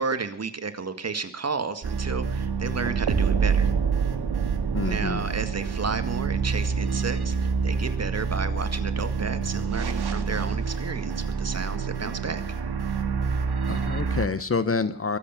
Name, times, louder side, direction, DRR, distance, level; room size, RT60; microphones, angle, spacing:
voice 1, 0.0-3.7 4.8-12.4, right 4 dB, 35° right, 9 dB, 2.0 m, -32 dB
sound 1, 1.8-14.3, right 5 dB, 65° right, 2.2 m, -27 dB
voice 2, 4.7-5.2 13.7-15.2, left 4 dB, 30° left, 14 dB, 1.0 m, -27 dB
23.0 x 8.6 x 5.8 m, 0.63 s
cardioid pair, 80°, 42 cm